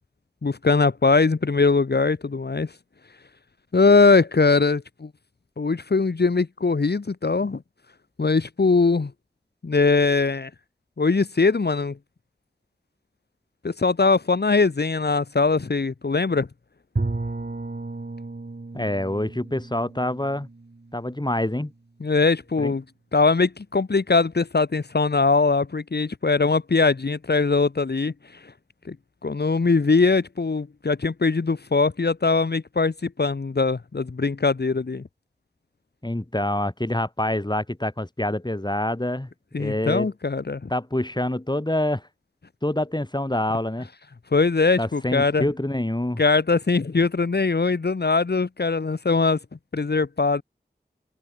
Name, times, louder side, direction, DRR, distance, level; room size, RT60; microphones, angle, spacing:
voice 1, 0.4-2.7 3.7-5.1 5.6-7.6 8.2-9.1 9.6-10.5 11.0-12.0 13.6-16.5 22.0-22.8 23.1-28.1 28.9-29.0 29.2-35.0 39.5-40.7 44.3-45.4 46.2-49.4 49.7-50.4, left 4 dB, 65° left, 1.2 m, -21 dB
Bowed string instrument, 17.0-21.8, right 3 dB, 60° right, 5.7 m, -33 dB
voice 2, 18.7-20.5 20.9-21.7 22.6-22.7 36.0-39.3 39.6-40.1 40.7-42.1 42.6-43.9 44.8-46.2, left 1 dB, 25° left, 7.7 m, -26 dB
wide cardioid pair, 60°, 18 cm